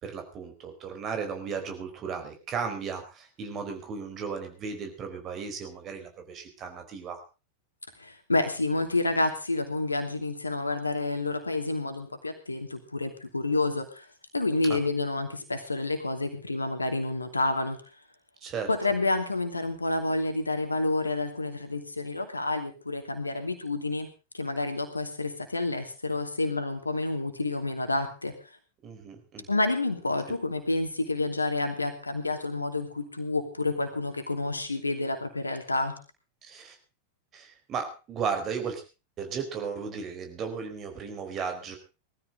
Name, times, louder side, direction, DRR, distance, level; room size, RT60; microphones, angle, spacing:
voice 1, 0.0-7.2 14.6-14.8 18.4-18.7 28.8-29.5 36.4-36.8 37.3-38.8 39.2-41.8, right 6 dB, 30° right, 6 dB, 4.5 m, -35 dB
voice 2, 8.0-14.1 14.3-17.8 18.7-24.1 24.3-28.3 29.5-36.0, left 2 dB, 80° left, 7 dB, 2.8 m, -29 dB
19.5 x 14.0 x 3.8 m, 0.32 s
figure-of-eight pair, 90°, 0 cm